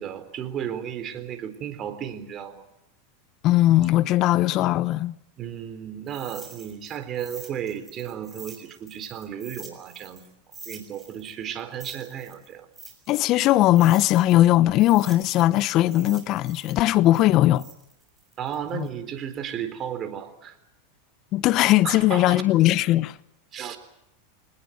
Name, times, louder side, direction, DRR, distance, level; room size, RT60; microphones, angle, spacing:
voice 1, 0.0-2.7 5.4-10.2 10.7-12.7 18.4-20.6 21.8-22.4 23.5-23.8, right 9 dB, 35° right, 3.9 m, -34 dB
voice 2, 3.4-5.1 13.1-17.7 18.7-18.9 21.3-23.2, left 15 dB, 45° left, 0.9 m, -19 dB
sound 1, 6.1-10.3 10.5-14.4 14.8-18.9, right 4 dB, 15° right, 6.9 m, -46 dB
24.5 x 20.0 x 9.3 m
hypercardioid pair, 110°, 0 cm